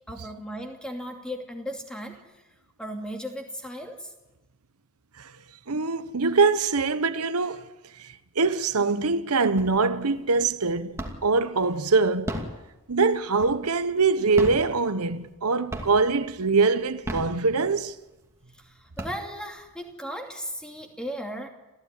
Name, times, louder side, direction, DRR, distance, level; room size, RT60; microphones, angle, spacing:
voice 1, 0.1-2.5 2.8-4.1 18.5-21.5, equal, 5° left, 2.6 m, -36 dB
voice 2, 5.7-7.7 8.0-12.4 12.9-17.9, right 4 dB, 85° right, 1.1 m, -23 dB
sound 1, 9.6-10.1 10.4-11.4 12.1-13.8 14.3-15.4 15.7-16.2 16.8-17.9 18.4-18.5 18.8-19.7, equal, 10° right, 2.5 m, -35 dB
26.5 x 15.5 x 9.8 m
head